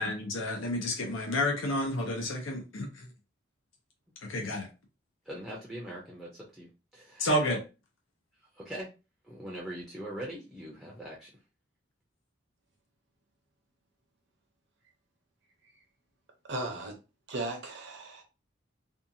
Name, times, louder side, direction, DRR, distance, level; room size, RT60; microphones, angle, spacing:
voice 1, 0.0-3.1 4.2-4.7 7.2-7.6, left 1 dB, 90° left, 0.7 m, -30 dB
voice 2, 5.3-7.4 8.5-8.9 9.2-11.3, right 1 dB, ahead, 0.5 m, -42 dB
voice 3, 16.5-17.0 17.3-18.2, right 2 dB, 60° right, 0.7 m, -36 dB
2.7 x 2.3 x 2.6 m
head